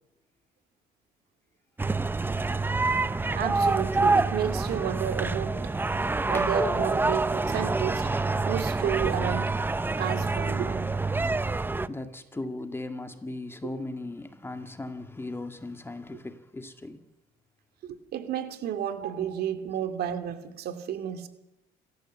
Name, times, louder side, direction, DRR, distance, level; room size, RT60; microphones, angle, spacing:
sound 1, 1.8-11.9, right 3 dB, 10° right, 0.7 m, -27 dB
voice 1, 3.3-5.7 6.3-9.5 10.0-10.9 17.8-21.3, right 9 dB, 70° right, 8 dB, 2.4 m, -31 dB
voice 2, 11.9-17.0, left 2 dB, 15° left, 7 dB, 1.8 m, -37 dB
28.0 x 14.0 x 7.5 m, 0.91 s
cardioid pair, 110°, 17 cm